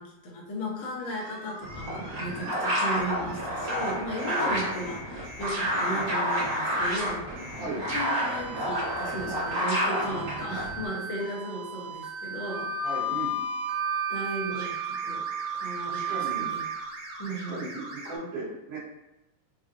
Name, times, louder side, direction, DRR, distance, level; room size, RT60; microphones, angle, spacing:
voice 1, 0.0-7.3 7.8-12.7 14.1-15.2 15.5-16.6 17.2-17.6, equal, 70° left, -4 dB, 1.2 m, -36 dB
sound 1, 1.0-3.3 3.6-18.2, right 4 dB, 85° right, 2.5 m, -41 dB
sound 2, 1.6-10.9, equal, 45° right, 1.2 m, -30 dB
Wind instrument woodwind instrument, 12.5-16.7, right 3 dB, 55° left, 0.6 m, -31 dB
voice 2, 12.8-13.4 14.5-14.7 15.9-16.5 17.3-18.8, right 2 dB, 65° right, -8 dB, 1.8 m, -37 dB
5.3 x 2.2 x 2.6 m, 0.91 s
omnidirectional pair, 3.5 m